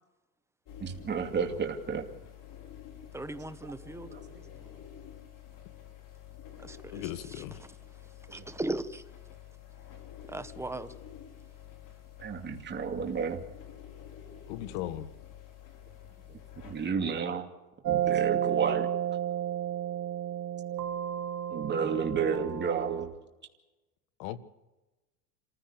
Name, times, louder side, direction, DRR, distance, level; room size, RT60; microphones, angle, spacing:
sound 1, 0.7-16.9, left 10 dB, 45° left, 4.7 m, -49 dB
voice 1, 0.8-2.1 3.8-4.4 8.3-8.5 12.2-13.4 16.3-17.5 17.8-18.9 21.5-23.1, right 6 dB, 25° right, 2.6 m, -32 dB
voice 2, 3.1-4.1 4.5-4.8 6.6-7.1 8.3-9.0 10.3-10.9, right 2 dB, 5° right, 1.1 m, -37 dB
voice 3, 6.9-7.7 14.5-15.1 24.2-24.4, left 13 dB, 70° left, 1.7 m, -38 dB
sound 2, 17.8-23.1, right 10 dB, 45° right, 1.8 m, -31 dB
27.0 x 15.5 x 6.8 m
supercardioid pair, 110°, 44 cm